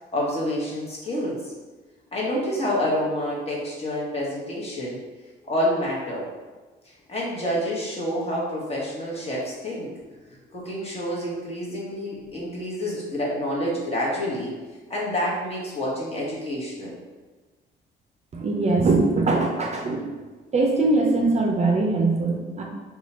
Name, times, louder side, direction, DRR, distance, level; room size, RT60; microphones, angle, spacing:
voice 1, 0.1-1.5 2.1-5.0 5.5-6.3 6.8-9.9 10.5-14.5 14.9-17.0, equal, 30° left, -5 dB, 1.2 m, -28 dB
voice 2, 18.3-20.2 20.5-22.6, right 3 dB, 35° right, 0 dB, 0.5 m, -22 dB
2.7 x 2.4 x 4.2 m, 1.3 s
cardioid pair, 90°, 20 cm